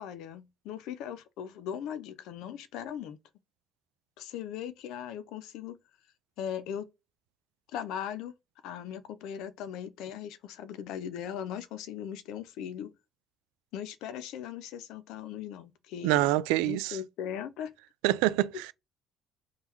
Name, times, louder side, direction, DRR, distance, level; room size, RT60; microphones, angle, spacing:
voice 1, 0.0-3.2 4.2-5.8 6.4-6.9 7.7-8.3 8.6-12.9 13.7-16.3 16.6-17.8, left 9 dB, 80° left, 0.6 m, -39 dB
voice 2, 16.0-17.0 18.0-18.7, right 16 dB, 90° right, 0.4 m, -26 dB
3.7 x 2.3 x 4.5 m
supercardioid pair, 80°, 0 cm